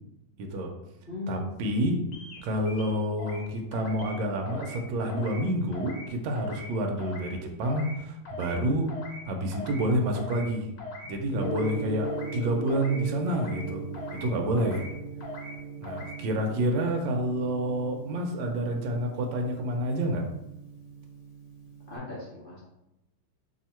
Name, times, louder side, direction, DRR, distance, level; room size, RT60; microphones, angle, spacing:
voice 1, 0.4-0.7 1.3-2.0 2.4-8.9 9.3-10.7 11.0-13.8 14.1-14.9 15.8-20.3, right 1 dB, 75° right, 3 dB, 1.3 m, -28 dB
voice 2, 1.1-1.7 21.9-22.6, left 2 dB, 40° left, -8 dB, 0.8 m, -38 dB
sound 1, 2.1-2.4 2.7-3.5 3.7-4.2 4.5-4.8 5.1-5.4 5.7-6.1 6.4-6.7 7.0-7.3 7.6-8.0 8.3-8.6 8.9-9.2 9.5-9.9 10.2-10.5 10.8-11.1 11.4-11.8 12.0-12.4 12.7-13.0 13.3-13.7 13.9-14.3 14.6-14.9 15.2-15.6 15.8-16.2, left 2 dB, 70° left, 1.4 m, -41 dB
Gong, 11.3-22.0, right 2 dB, 85° left, 1.4 m, -39 dB
3.1 x 2.8 x 4.2 m, 0.90 s
omnidirectional pair, 2.2 m